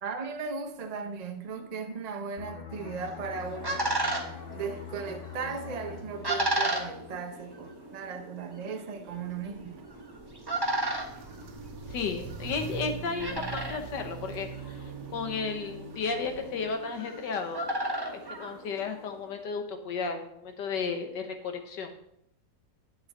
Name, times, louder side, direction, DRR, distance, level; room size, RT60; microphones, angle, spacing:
voice 1, 0.0-3.9 4.5-9.8, right 5 dB, 50° right, 0.4 m, -37 dB
sound 1, 2.4-7.8 8.1-8.3, left 7 dB, 50° left, 1.2 m, -45 dB
sound 2, 3.0-19.2, right 1 dB, 15° right, 1.1 m, -35 dB
Walk footsteps, 9.1-16.7, right 6 dB, 80° right, 1.6 m, -43 dB
voice 2, 11.9-14.8 15.1-17.6 18.1-21.9, left 5 dB, 85° left, 1.8 m, -33 dB
11.0 x 7.9 x 4.1 m
omnidirectional pair, 1.8 m